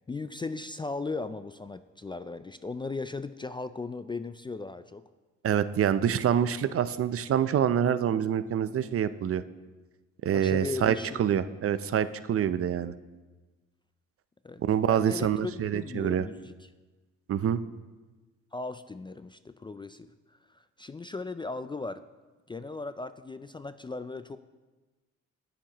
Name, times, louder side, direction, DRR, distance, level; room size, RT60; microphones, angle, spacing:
voice 1, 0.1-5.0 10.3-11.3 14.4-14.6 14.9-16.6 18.5-20.1 20.5-22.0 22.5-24.4, left 3 dB, 15° left, 12 dB, 0.3 m, -37 dB
voice 2, 5.4-9.4 10.2-12.9 14.6-16.3 17.3-17.6, right 9 dB, 50° right, 13 dB, 0.5 m, -26 dB
19.5 x 7.4 x 3.0 m, 1.2 s
cardioid pair, 90°, 30 cm